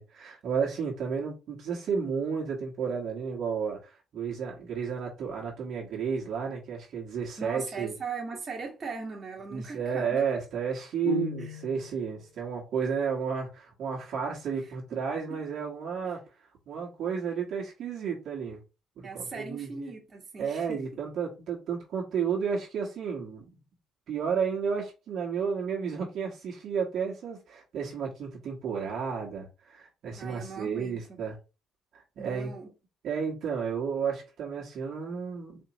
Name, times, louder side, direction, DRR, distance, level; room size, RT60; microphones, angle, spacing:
voice 1, 0.0-7.9 9.5-16.2 16.7-18.6 19.0-19.9 20.4-23.5 24.1-31.4 31.9-32.5 33.0-35.6, right 6 dB, 65° right, 1.6 m, -32 dB
voice 2, 7.4-10.3 11.4-11.5 14.9-15.0 19.0-20.8 30.2-31.2 32.2-32.7, right 4 dB, 40° right, 1.5 m, -39 dB
sound 1, 11.0-12.1, left 8 dB, 85° left, 0.8 m, -35 dB
4.4 x 2.9 x 3.1 m
supercardioid pair, 80°, 0 cm